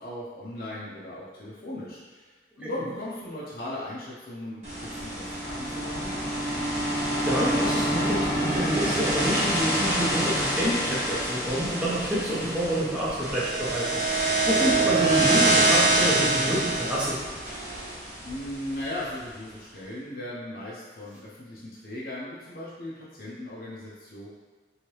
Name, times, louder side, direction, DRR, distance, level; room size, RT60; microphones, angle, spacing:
voice 1, 0.0-6.3 18.2-24.3, left 1 dB, 55° left, -7 dB, 0.6 m, -38 dB
sound 1, 4.6-18.8, right 2 dB, 40° right, 1.0 m, -26 dB
voice 2, 6.9-17.2, equal, 5° right, -8 dB, 0.7 m, -28 dB
2.9 x 2.7 x 3.1 m, 1.3 s
head